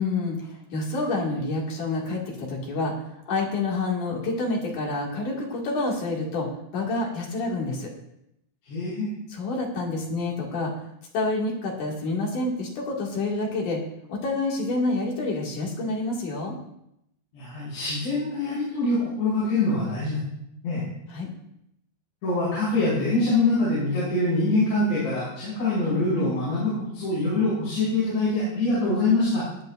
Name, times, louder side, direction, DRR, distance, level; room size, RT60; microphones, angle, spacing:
voice 1, 0.0-6.5 6.7-7.9 9.3-10.7 11.1-13.8 14.1-16.6 21.1-21.3, left 2 dB, 50° left, -2 dB, 3.5 m, -28 dB
voice 2, 8.7-9.1 17.3-20.2 20.6-20.8 22.2-29.5, left 2 dB, 85° left, -9 dB, 7.8 m, -24 dB
19.0 x 10.5 x 2.6 m, 0.80 s
omnidirectional pair, 4.9 m